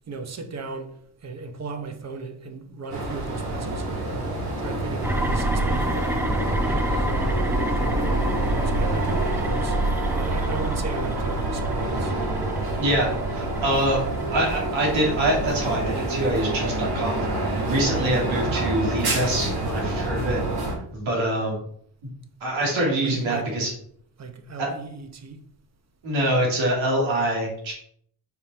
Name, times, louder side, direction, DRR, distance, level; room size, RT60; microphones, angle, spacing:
voice 1, 0.1-0.9 1.2-6.3 6.6-8.0 8.4-9.8 10.1-12.1 22.6-22.7 23.0-23.5 24.2-25.4, right 4 dB, 35° right, 0.9 m, -36 dB
sound 1, 2.9-20.7, right 2 dB, 55° right, 2.5 m, -28 dB
sound 2, 5.0-15.7, right 1 dB, 5° right, 0.5 m, -28 dB
voice 2, 12.8-17.2 17.6-20.4 20.9-21.6 22.4-23.7 24.6-24.7 26.0-27.7, right 1 dB, 80° right, 2.8 m, -25 dB
5.4 x 4.6 x 4.4 m
cardioid pair, 100°, 46 cm